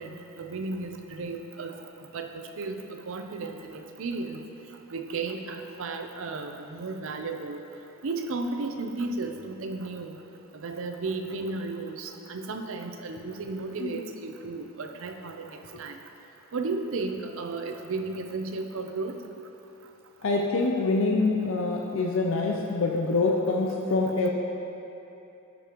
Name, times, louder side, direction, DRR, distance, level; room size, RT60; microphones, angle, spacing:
voice 1, 0.0-1.7 2.1-2.8 3.1-4.4 4.9-7.6 8.0-10.2 10.5-16.0 16.5-19.2, right 3 dB, 65° right, 5 dB, 0.5 m, -34 dB
voice 2, 20.2-24.3, left 3 dB, 65° left, 0 dB, 0.5 m, -25 dB
13.0 x 5.2 x 3.0 m, 3.0 s
head